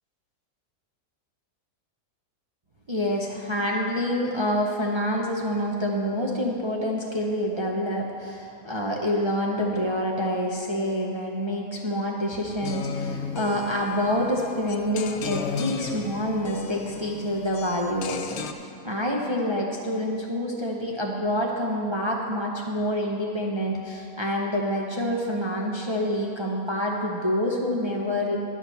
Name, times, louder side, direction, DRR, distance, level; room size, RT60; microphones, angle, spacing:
voice 1, 2.9-28.4, equal, 35° right, -3 dB, 0.4 m, -27 dB
sound 1, 12.6-18.5, left 6 dB, 70° left, 0.6 m, -34 dB
11.0 x 4.9 x 6.9 m, 2.5 s
omnidirectional pair, 1.6 m